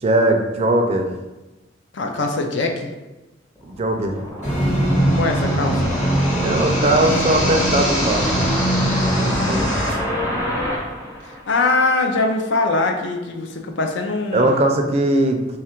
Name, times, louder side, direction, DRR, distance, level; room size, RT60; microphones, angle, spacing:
voice 1, 0.0-1.1 3.6-4.2 6.4-8.3 9.1-9.7 14.3-15.6, right 1 dB, 35° right, 3 dB, 0.4 m, -19 dB
voice 2, 1.9-2.9 5.0-6.0 11.2-14.6, left 3 dB, 75° left, 3 dB, 0.5 m, -22 dB
sound 1, 3.6-11.9, equal, 15° left, 0.6 m, -27 dB
sound 2, 4.4-9.9, right 1 dB, 40° left, 1.1 m, -21 dB
3.2 x 2.4 x 4.3 m, 1.1 s
head